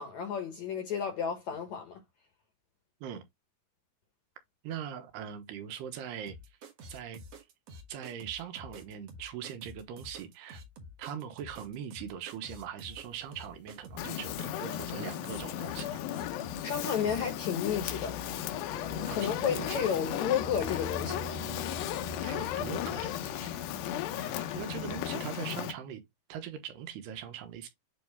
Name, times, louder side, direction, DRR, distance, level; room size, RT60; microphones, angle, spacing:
voice 1, 0.0-2.0 16.6-18.2 19.1-21.3, left 7 dB, 65° left, 1.9 m, -32 dB
voice 2, 4.6-6.4 6.9-7.2 7.9-10.6 11.0-16.0 19.1-19.9 22.2-23.6 24.1-26.0 26.3-27.7, right 8 dB, 85° right, 3.1 m, -41 dB
sound 1, 6.3-17.4, equal, 60° right, 1.8 m, -49 dB
sound 2, 12.9-25.1, left 1 dB, 10° left, 0.7 m, -46 dB
Fire, 14.0-25.7, left 11 dB, 85° left, 2.9 m, -35 dB
8.5 x 3.2 x 3.4 m
omnidirectional pair, 4.7 m